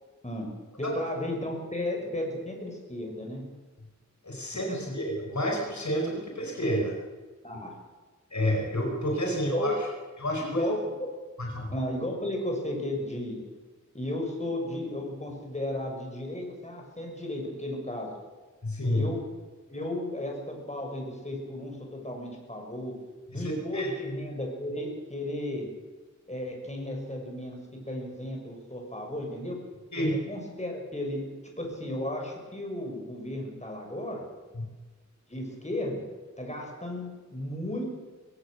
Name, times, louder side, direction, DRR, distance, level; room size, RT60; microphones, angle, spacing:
voice 1, 0.8-3.4 4.7-4.8 7.4-7.7 9.3-9.7 10.4-11.1 11.7-13.4 13.9-18.1 18.9-19.2 19.7-22.9 23.3-25.7 26.3-27.6 27.9-29.6 30.0-31.2 31.6-34.2 35.3-36.0 36.4-38.0, left 1 dB, 20° left, 1 dB, 6.7 m, -34 dB
voice 2, 4.2-6.9 8.3-9.7 10.2-10.6 11.4-11.7 18.6-19.1 23.3-23.9 29.9-30.1 34.5-34.7, equal, 65° left, 0 dB, 4.8 m, -29 dB
23.5 x 17.0 x 6.6 m, 1.3 s
wide cardioid pair, 65°, 30 cm